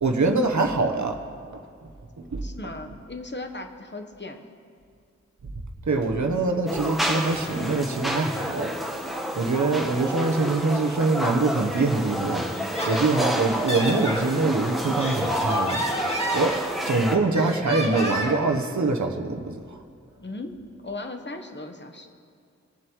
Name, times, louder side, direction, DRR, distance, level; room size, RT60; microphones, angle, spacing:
voice 1, 0.0-1.2 2.2-2.5 5.4-5.5 5.9-8.7 9.4-19.8, right 3 dB, 70° right, 4 dB, 1.0 m, -24 dB
voice 2, 2.4-4.4 20.2-20.6 20.8-22.1, left 2 dB, 40° left, 5 dB, 1.1 m, -37 dB
sound 1, 6.7-17.2, equal, ahead, 1.3 m, -29 dB
Laughter, 12.5-14.2 14.8-17.0 17.3-18.5, right 1 dB, 20° left, 2.0 m, -30 dB
22.5 x 7.7 x 3.1 m, 2.2 s
cardioid pair, 40°, 30 cm